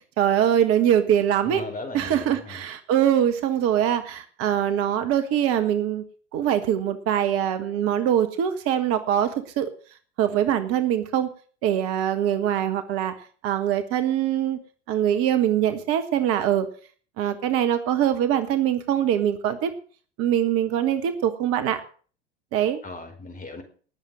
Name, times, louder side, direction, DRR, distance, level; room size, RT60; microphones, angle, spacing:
voice 1, 0.2-1.6 1.9-6.0 6.3-9.7 10.2-11.3 11.6-13.1 13.4-14.6 14.9-16.7 17.2-19.7 20.2-21.8 22.5-22.8, right 10 dB, 45° right, 9 dB, 1.6 m, -23 dB
voice 2, 1.4-2.6 22.8-23.6, left 2 dB, 25° left, 5 dB, 4.7 m, -37 dB
19.0 x 7.3 x 7.5 m, 0.43 s
figure-of-eight pair, 75°, 33 cm